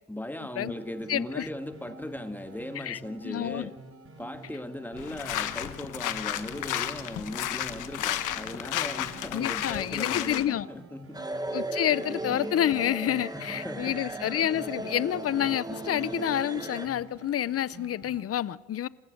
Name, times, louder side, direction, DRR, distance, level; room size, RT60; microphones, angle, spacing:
voice 1, 0.1-3.7 4.2-11.2 13.3-14.0, left 1 dB, 5° left, 1.8 m, -38 dB
sound 1, 0.6-18.2, right 2 dB, 45° right, 4.6 m, -49 dB
voice 2, 1.1-1.5 2.8-3.0 3.2-3.7 9.3-10.7 11.5-18.9, left 11 dB, 50° left, 0.7 m, -28 dB
sound 2, 5.0-10.4, left 12 dB, 85° left, 1.3 m, -33 dB
sound 3, 11.1-16.9, right 2 dB, 15° right, 1.7 m, -36 dB
27.5 x 15.0 x 6.7 m
cardioid pair, 90°, 30 cm